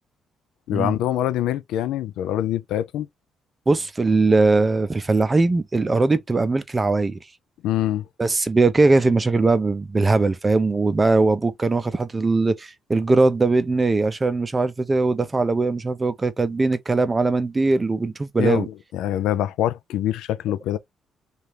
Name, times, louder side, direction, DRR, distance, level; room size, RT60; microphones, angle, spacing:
voice 1, 0.7-3.1 7.6-8.1 18.4-20.8, left 12 dB, 90° left, 0.3 m, -24 dB
voice 2, 3.7-7.2 8.2-18.7, right 3 dB, 25° right, 0.5 m, -20 dB
2.8 x 2.4 x 3.2 m
cardioid pair, 90°, 0 cm